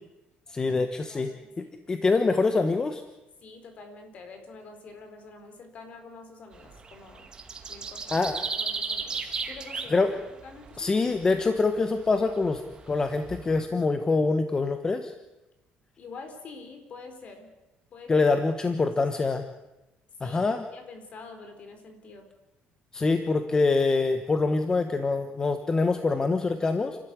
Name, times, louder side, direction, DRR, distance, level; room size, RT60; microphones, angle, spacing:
voice 1, 0.5-3.0 8.1-8.4 9.9-10.1 10.8-15.1 18.1-19.4 20.2-20.7 22.9-27.0, left 3 dB, 20° left, 8 dB, 1.2 m, -25 dB
voice 2, 1.1-1.7 3.4-7.3 7.7-10.0 10.4-11.0 16.0-17.5 17.9-18.3 18.8-19.4 20.2-22.3, left 4 dB, 45° left, 6 dB, 4.4 m, -46 dB
sound 1, 6.5-13.6, right 5 dB, 25° right, 2.2 m, -36 dB
29.5 x 13.0 x 9.5 m, 1.0 s
cardioid pair, 150°, 3 cm